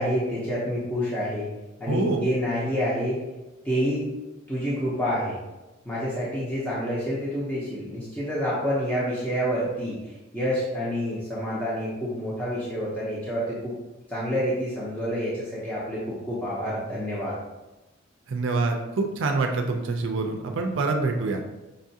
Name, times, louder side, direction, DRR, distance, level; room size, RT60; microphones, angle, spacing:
voice 1, 0.0-1.5 1.8-3.2 3.6-4.1 4.5-5.4 5.8-13.7 14.1-17.3, equal, 10° left, -8 dB, 0.7 m, -28 dB
voice 2, 1.9-2.2 18.3-21.4, right 3 dB, 65° right, 3 dB, 0.4 m, -26 dB
5.2 x 2.4 x 2.7 m, 1.1 s
head